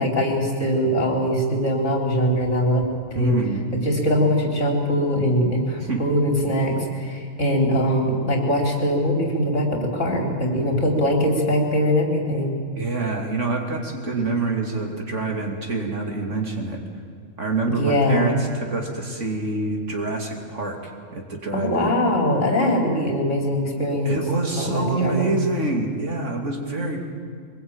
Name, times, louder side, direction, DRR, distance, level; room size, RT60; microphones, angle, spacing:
voice 1, 0.0-2.8 3.1-3.3 3.7-12.5 17.7-18.4 21.5-24.2 24.6-25.4, equal, 60° left, 1 dB, 4.2 m, -22 dB
voice 2, 3.1-3.7 5.8-6.0 12.8-16.8 17.4-21.9 24.0-27.0, right 3 dB, 60° right, 1 dB, 3.2 m, -26 dB
23.0 x 21.0 x 8.9 m, 2.1 s
omnidirectional pair, 1.4 m